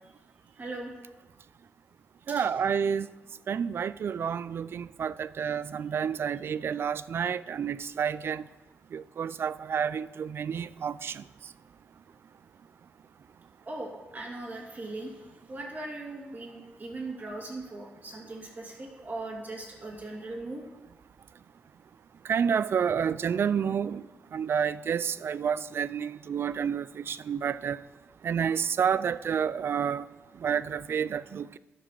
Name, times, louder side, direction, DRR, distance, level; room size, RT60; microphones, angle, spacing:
voice 1, 0.6-0.9 2.3-2.5 13.7-20.6, right 2 dB, 40° right, 2.3 m, -39 dB
voice 2, 2.3-3.1 3.5-8.4 8.9-11.2 22.3-24.0 24.3-27.8 28.2-30.1 30.4-31.6, right 7 dB, 60° right, 0.3 m, -29 dB
11.0 x 5.0 x 6.4 m
cardioid pair, 75°, 5 cm